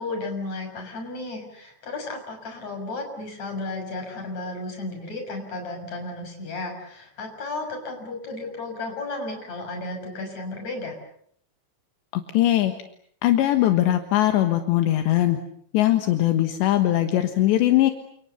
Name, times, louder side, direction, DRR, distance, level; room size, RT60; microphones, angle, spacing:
voice 1, 0.0-11.0, left 2 dB, 40° left, 4 dB, 7.6 m, -33 dB
voice 2, 12.1-12.7 13.2-15.4 15.7-17.9, left 14 dB, 75° left, 6 dB, 3.7 m, -20 dB
29.0 x 28.5 x 7.0 m, 0.67 s
omnidirectional pair, 5.1 m